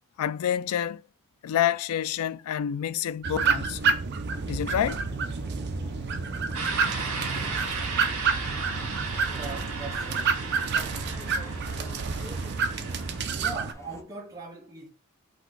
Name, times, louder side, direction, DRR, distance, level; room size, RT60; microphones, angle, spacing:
voice 1, 0.2-1.0 1.4-3.9 4.5-5.0, left 9 dB, 85° left, 0.3 m, -28 dB
sound 1, 3.2-13.7, right 5 dB, 50° right, 0.5 m, -29 dB
sound 2, 4.3-14.0, left 2 dB, 15° left, 0.4 m, -46 dB
sound 3, 6.5-13.2, right 4 dB, 70° right, 1.7 m, -35 dB
voice 2, 9.3-10.4 13.4-14.9, right 4 dB, 15° right, 1.0 m, -40 dB
4.1 x 2.8 x 4.6 m
head